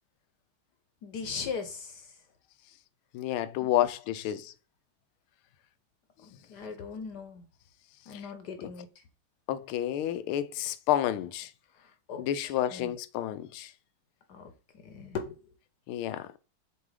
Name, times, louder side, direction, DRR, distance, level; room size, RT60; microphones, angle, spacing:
voice 1, 1.0-2.1 3.6-3.7 6.2-7.4 8.1-8.9 12.1-12.9 14.3-14.5 14.8-15.4, left 5 dB, 65° left, 1.3 m, -39 dB
voice 2, 3.1-4.5 8.1-8.2 9.5-11.5 12.2-13.7 15.9-16.3, left 12 dB, 85° left, 1.5 m, -30 dB
7.2 x 2.9 x 4.8 m
omnidirectional pair, 2.3 m